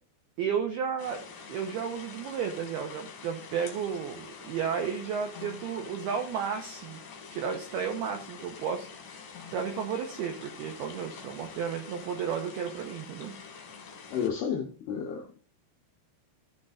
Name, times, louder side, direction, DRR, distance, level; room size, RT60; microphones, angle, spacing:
voice 1, 0.4-1.2 1.5-7.0 7.3-13.3, right 7 dB, 85° right, 2.2 m, -33 dB
sound 1, 1.0-14.3, left 5 dB, 50° left, 2.8 m, -46 dB
voice 2, 14.1-15.4, left 7 dB, 80° left, 2.3 m, -32 dB
14.5 x 6.6 x 2.5 m
omnidirectional pair, 5.9 m